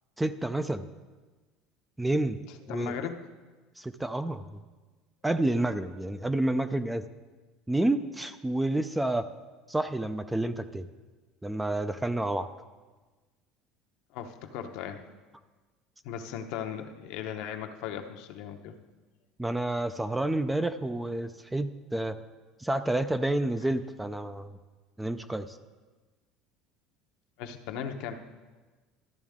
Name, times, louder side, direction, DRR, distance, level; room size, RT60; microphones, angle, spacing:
voice 1, 0.2-0.8 2.0-2.4 2.7-2.9 3.8-4.6 5.2-7.0 7.7-9.3 9.7-10.9 11.4-12.5 19.4-22.2 22.6-24.6 25.0-25.6, right 1 dB, 5° right, 11 dB, 0.4 m, -29 dB
voice 2, 2.5-3.3 14.1-15.0 16.0-18.8 27.4-28.1, left 8 dB, 70° left, 5 dB, 0.8 m, -37 dB
12.5 x 7.3 x 3.6 m, 1.3 s
supercardioid pair, 125°, 0 cm